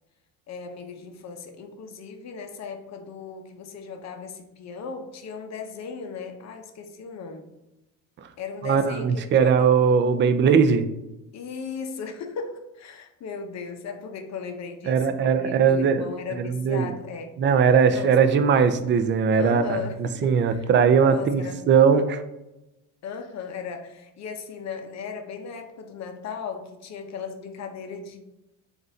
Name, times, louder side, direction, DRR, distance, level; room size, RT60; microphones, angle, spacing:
voice 1, 0.5-7.5 8.4-9.8 11.3-17.3 17.9-18.4 19.4-20.7 21.1-21.7 23.0-28.2, left 5 dB, 45° left, 5 dB, 0.7 m, -37 dB
voice 2, 8.6-10.9 14.9-16.0 16.4-16.9 17.4-22.2, right 6 dB, 30° right, 9 dB, 0.4 m, -20 dB
3.9 x 2.6 x 3.9 m, 0.97 s
supercardioid pair, 100°, 38 cm